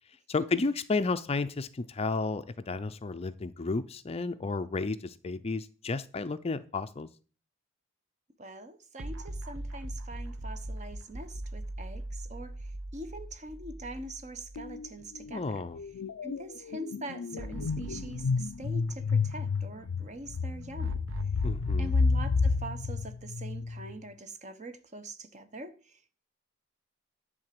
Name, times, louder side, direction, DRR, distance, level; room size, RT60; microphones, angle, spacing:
voice 1, 0.1-7.1 15.3-15.8 21.4-21.9, left 3 dB, 30° left, 0.5 m, -32 dB
voice 2, 8.4-15.6 16.2-21.0 21.8-26.2, right 1 dB, 35° right, 0.9 m, -43 dB
sound 1, 9.0-15.3 15.7-15.8 17.4-19.8 20.8-23.6, right 1 dB, 70° right, 1.0 m, -41 dB
sound 2, 14.6-14.9 15.1-23.9, left 4 dB, 85° left, 0.5 m, -31 dB
10.5 x 3.9 x 7.5 m
head